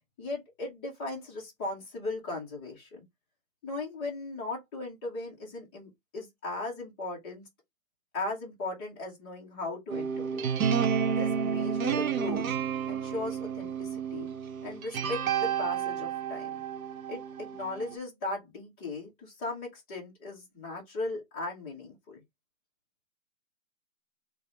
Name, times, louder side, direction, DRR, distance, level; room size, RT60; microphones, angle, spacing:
voice 1, 0.2-3.0 3.6-7.5 8.1-10.5 11.1-12.5 12.9-14.3 14.6-16.6 17.1-22.2, left 2 dB, 10° left, 0.5 m, -37 dB
sound 1, 9.9-17.9, right 7 dB, 85° right, 0.7 m, -31 dB
3.4 x 2.0 x 4.0 m
hypercardioid pair, 155°, 41 cm